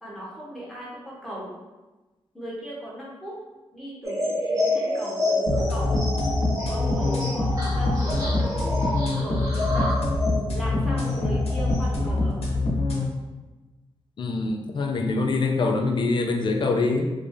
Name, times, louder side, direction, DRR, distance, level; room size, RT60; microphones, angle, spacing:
voice 1, 0.0-1.5 2.3-3.4 3.7-6.0 6.7-8.7 9.2-9.9 10.5-12.4, right 1 dB, ahead, -7 dB, 1.0 m, -37 dB
sound 1, 4.0-12.1, left 1 dB, 35° right, 1.1 m, -29 dB
sound 2, 5.5-13.0, left 2 dB, 80° left, 0.9 m, -24 dB
voice 2, 14.2-17.1, left 3 dB, 50° left, 3 dB, 0.4 m, -24 dB
3.2 x 2.6 x 3.5 m, 1.1 s
wide cardioid pair, 175°, 10 cm